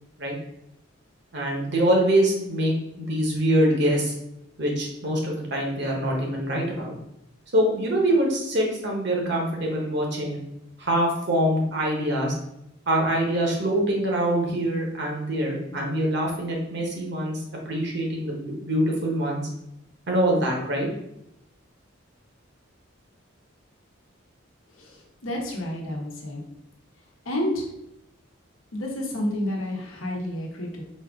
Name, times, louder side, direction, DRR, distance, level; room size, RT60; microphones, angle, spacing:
voice 1, 1.3-4.1 4.6-6.9 7.5-10.4 10.8-12.3 12.9-19.5 20.1-20.9, right 1 dB, 55° right, -1 dB, 1.1 m, -24 dB
voice 2, 25.2-26.4 27.3-27.6 28.7-30.8, left 1 dB, 80° left, 0 dB, 1.0 m, -29 dB
4.2 x 2.5 x 3.6 m, 0.82 s
head